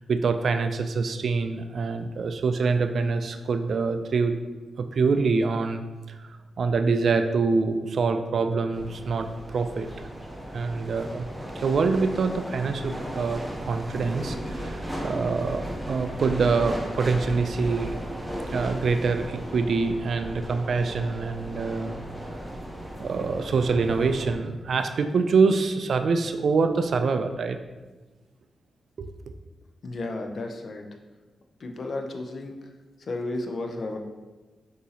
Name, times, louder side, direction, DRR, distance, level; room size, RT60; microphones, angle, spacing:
voice 1, 0.0-4.4 4.8-5.8 6.1-9.9 10.5-11.3 11.6-17.9 18.5-22.0 22.5-22.6 23.0-27.6 29.0-29.1, right 4 dB, 65° right, 8 dB, 0.3 m, -25 dB
sound 1, 8.7-24.4, equal, 5° right, 0.8 m, -36 dB
voice 2, 29.8-30.8 31.6-32.5 33.1-34.0, left 2 dB, 60° left, 4 dB, 0.6 m, -32 dB
6.2 x 2.7 x 2.8 m, 1.2 s
supercardioid pair, 50°, 0 cm